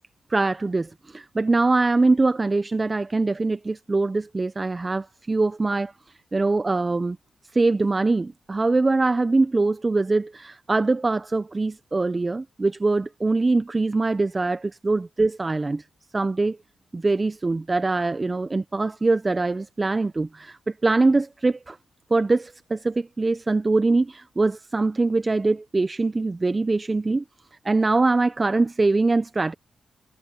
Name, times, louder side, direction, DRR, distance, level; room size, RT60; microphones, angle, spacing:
voice 1, 0.3-5.9 6.3-7.2 7.5-15.8 16.1-16.6 16.9-21.8 22.1-27.2 27.6-29.5, right 3 dB, 30° right, 0.8 m, -23 dB
supercardioid pair, 50°, 0 cm